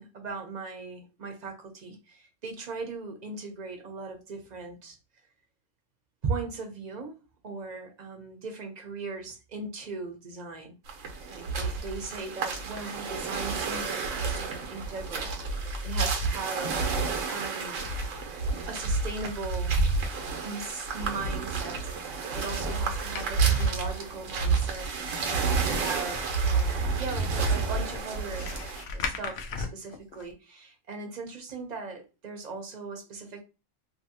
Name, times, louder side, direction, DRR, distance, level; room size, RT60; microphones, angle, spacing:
voice 1, 0.0-5.0 6.2-7.2 7.4-10.7 11.3-16.8 17.3-17.9 18.7-19.8 20.4-21.9 22.3-28.5 28.9-33.4, right 4 dB, 40° right, 3 dB, 0.8 m, -38 dB
sound 1, 10.9-28.8, right 4 dB, 85° right, 1.1 m, -30 dB
sound 2, 22.7-30.3, left 5 dB, 65° left, 0.7 m, -40 dB
2.8 x 2.7 x 2.7 m, 0.29 s
omnidirectional pair, 1.3 m